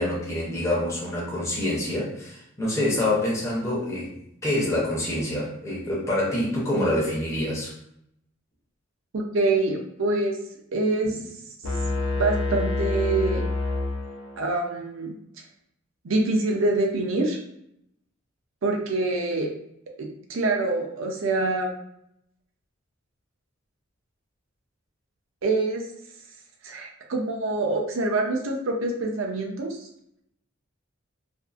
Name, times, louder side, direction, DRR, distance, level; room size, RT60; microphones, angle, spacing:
voice 1, 0.0-7.7 11.0-11.2, left 1 dB, 15° left, -6 dB, 0.6 m, -26 dB
voice 2, 9.1-10.4 10.7-11.2 12.2-13.4 14.4-15.1 16.0-17.4 18.6-19.5 20.0-21.7 25.4-25.9 26.6-29.8, right 2 dB, 65° right, 1 dB, 0.5 m, -25 dB
sound 1, 11.6-14.6, left 2 dB, 75° left, 0.5 m, -27 dB
2.6 x 2.4 x 2.4 m, 0.74 s
head